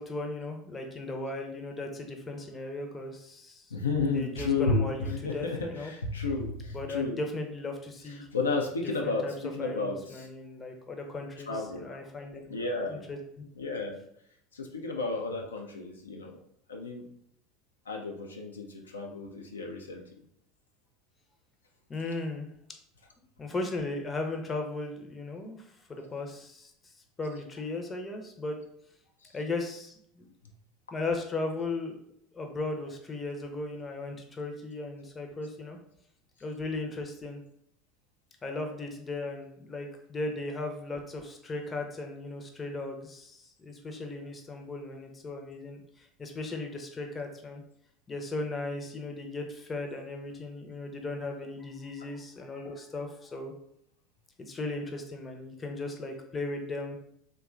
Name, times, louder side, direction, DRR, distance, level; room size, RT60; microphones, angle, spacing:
voice 1, 0.0-3.8 4.1-5.9 6.7-8.3 9.0-9.3 9.6-12.5 12.9-13.4 21.9-22.5 23.4-26.9 27.2-28.6 29.3-30.3 30.9-32.0 32.3-35.8 36.4-37.4 38.4-47.6 48.1-53.5 54.4-57.0, left 2 dB, 25° left, 3 dB, 0.5 m, -37 dB
voice 2, 3.7-7.2 8.0-10.3 11.5-11.9 12.5-13.0 13.6-14.0 14.5-16.4 16.7-17.1 17.9-20.0 29.2-29.3, left 3 dB, 85° left, 1 dB, 0.3 m, -32 dB
2.9 x 2.2 x 2.4 m, 0.71 s
figure-of-eight pair, 75°, 0 cm